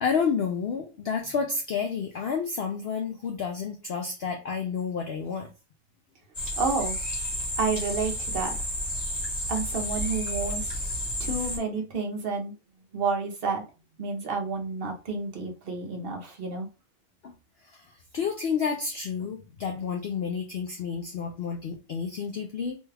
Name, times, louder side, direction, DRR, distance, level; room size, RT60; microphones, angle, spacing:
voice 1, 0.0-5.5 17.2-17.3 17.6-17.9 18.1-22.8, left 6 dB, 65° left, 3 dB, 0.6 m, -30 dB
sound 1, 6.3-11.6, equal, 30° left, 1.3 m, -31 dB
voice 2, 6.6-7.0 7.6-8.6 9.5-10.7 11.2-12.5 12.9-13.6 14.0-16.7, right 4 dB, 50° right, 3 dB, 0.8 m, -30 dB
3.1 x 2.3 x 3.3 m, 0.30 s
omnidirectional pair, 1.5 m